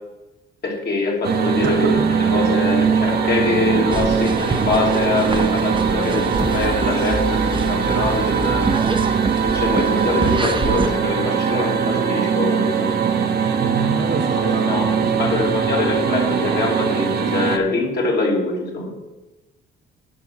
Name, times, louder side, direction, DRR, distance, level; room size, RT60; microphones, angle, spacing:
voice 1, 0.6-8.7 9.4-12.9 14.7-18.9, left 3 dB, 55° left, -2 dB, 2.8 m, -23 dB
sound 1, 1.2-17.6, right 6 dB, 55° right, 0.9 m, -21 dB
voice 2, 1.6-2.0 13.6-16.0 16.4-16.6, right 5 dB, 70° right, 4 dB, 1.4 m, -28 dB
sound 2, 3.9-10.9, right 3 dB, 25° right, 0.8 m, -27 dB
sound 3, 6.4-11.3 11.7-11.8, equal, 5° left, 0.8 m, -32 dB
10.5 x 5.8 x 5.6 m, 1.1 s
cardioid pair, 90°, 20 cm